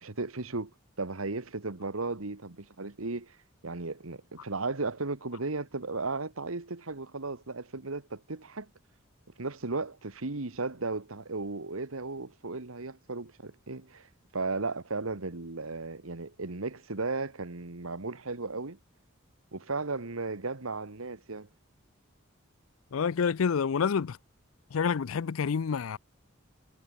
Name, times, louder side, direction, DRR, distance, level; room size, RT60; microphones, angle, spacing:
voice 1, 0.0-0.7 1.0-3.4 3.6-8.7 9.4-14.1 14.3-18.8 19.5-21.5, right 3 dB, 85° right, 1.6 m, -35 dB
voice 2, 22.9-24.2 24.7-26.0, left 6 dB, 80° left, 0.5 m, -28 dB
head